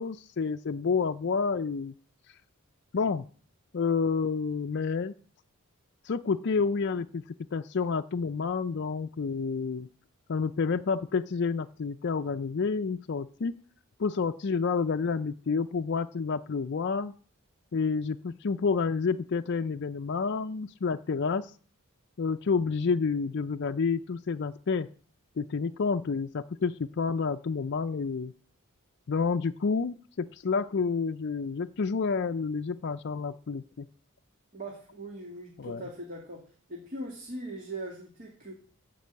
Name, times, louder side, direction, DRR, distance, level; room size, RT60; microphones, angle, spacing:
voice 1, 0.0-1.9 2.9-3.2 3.7-5.1 6.0-7.2 7.5-9.9 10.3-13.6 14.0-17.1 17.7-21.5 22.2-24.9 25.4-28.3 29.1-33.9 35.6-35.8, left 5 dB, 50° left, 6 dB, 0.4 m, -29 dB
voice 2, 34.5-36.4 36.7-38.5, right 1 dB, 40° right, -1 dB, 2.3 m, -40 dB
14.0 x 5.4 x 8.2 m, 0.43 s
head